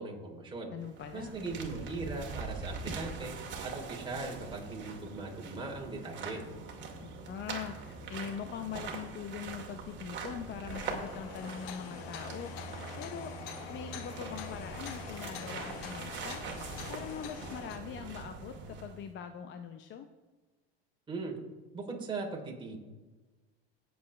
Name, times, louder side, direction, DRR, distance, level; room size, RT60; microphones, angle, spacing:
voice 1, 0.0-0.7 1.1-3.3 3.6-6.4 21.1-21.3 21.7-22.8, right 3 dB, 15° right, -1 dB, 3.2 m, -39 dB
voice 2, 0.7-1.4 7.0-12.5 13.0-13.3 13.7-16.4 16.9-20.1, left 8 dB, 40° left, 7 dB, 0.7 m, -42 dB
sound 1, 0.8-19.1, right 4 dB, 35° right, 2.3 m, -43 dB
sound 2, 10.7-17.8, left 8 dB, 75° left, 1.3 m, -45 dB
18.0 x 7.1 x 3.2 m, 1.2 s
supercardioid pair, 110°, 31 cm